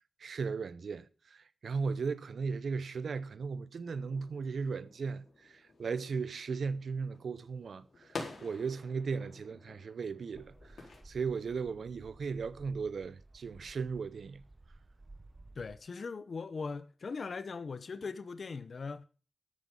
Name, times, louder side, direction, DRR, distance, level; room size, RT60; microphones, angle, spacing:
voice 1, 0.2-14.4, right 5 dB, 80° right, 0.8 m, -37 dB
sound 1, 3.9-11.0, left 3 dB, 80° left, 4.4 m, -49 dB
sound 2, 10.3-15.8, right 2 dB, 25° right, 0.8 m, -56 dB
voice 2, 15.6-19.0, left 4 dB, 60° left, 0.8 m, -40 dB
13.0 x 8.5 x 5.4 m
wide cardioid pair, 135°, 0 cm